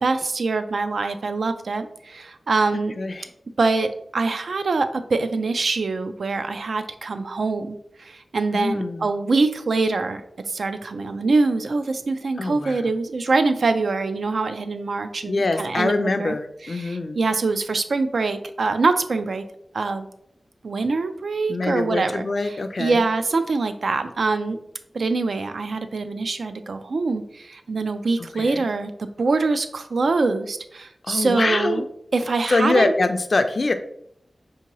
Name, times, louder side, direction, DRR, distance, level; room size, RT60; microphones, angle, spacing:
voice 1, 0.0-3.0 3.6-16.3 16.6-19.4 19.7-20.1 20.6-24.6 24.9-31.9 32.1-32.9, right 3 dB, 75° right, 9 dB, 0.3 m, -24 dB
voice 2, 3.0-3.3 8.5-9.1 12.4-12.8 15.3-17.2 21.5-23.0 28.3-28.6 31.0-31.8 32.5-33.7, left 3 dB, 55° left, 8 dB, 0.3 m, -24 dB
4.5 x 2.8 x 2.9 m, 0.72 s
wide cardioid pair, 85°, 0 cm